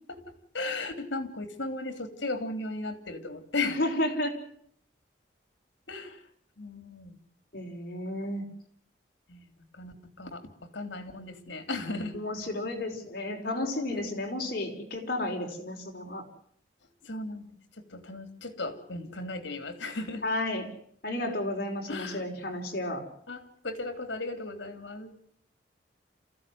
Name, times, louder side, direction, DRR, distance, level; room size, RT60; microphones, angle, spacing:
voice 1, 0.5-3.8 5.9-6.2 6.6-7.1 9.3-9.5 9.7-10.4 10.7-12.2 13.9-14.0 17.0-17.5 17.9-20.2 21.9-22.2 23.3-25.1, left 2 dB, 75° left, 8 dB, 3.5 m, -36 dB
voice 2, 3.6-4.3 7.5-8.4 12.1-16.2 20.2-20.7 21.0-23.0, left 1 dB, 50° left, 1 dB, 5.2 m, -32 dB
27.5 x 15.5 x 9.5 m, 0.65 s
head